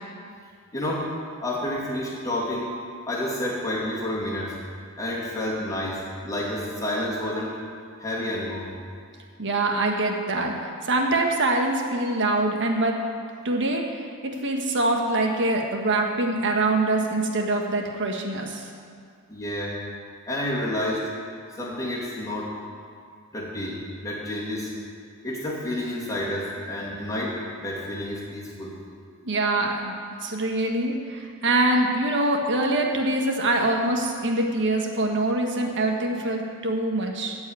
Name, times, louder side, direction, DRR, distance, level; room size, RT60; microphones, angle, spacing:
voice 1, 0.7-1.0 1.4-2.7 3.1-4.6 5.0-7.6 8.0-8.7 19.3-19.8 20.3-21.1 21.6-22.5 23.3-24.7 25.2-28.8, left 1 dB, 15° left, -6 dB, 2.5 m, -29 dB
voice 2, 9.4-13.0 13.4-18.6 29.2-30.0 30.2-37.4, right 2 dB, 55° right, 2 dB, 1.4 m, -24 dB
14.0 x 4.8 x 8.8 m, 2.2 s
head